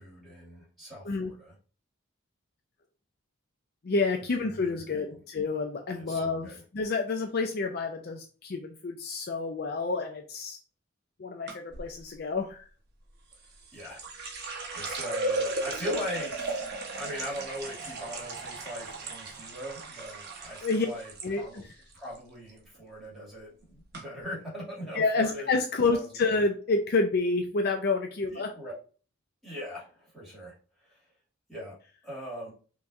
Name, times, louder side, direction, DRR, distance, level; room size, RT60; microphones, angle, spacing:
voice 1, 0.0-1.5 4.4-5.2 5.9-6.6 13.7-14.0 14.4-16.6 17.0-21.6 21.9-25.5 25.9-26.1 28.3-28.7 29.4-30.5 30.8-31.0 31.5-31.8 32.0-32.5, equal, ahead, -8 dB, 2.2 m, -40 dB
voice 2, 3.8-10.6 11.2-12.7 20.6-20.9 21.2-21.6 24.9-28.5, left 3 dB, 45° left, 4 dB, 0.4 m, -29 dB
sound 1, 11.5-11.9 13.3-21.3 21.6-22.2 22.5-22.8 23.5-23.6 23.9-24.0, right 2 dB, 50° right, 1.0 m, -36 dB
5.6 x 3.0 x 2.5 m, 0.38 s
head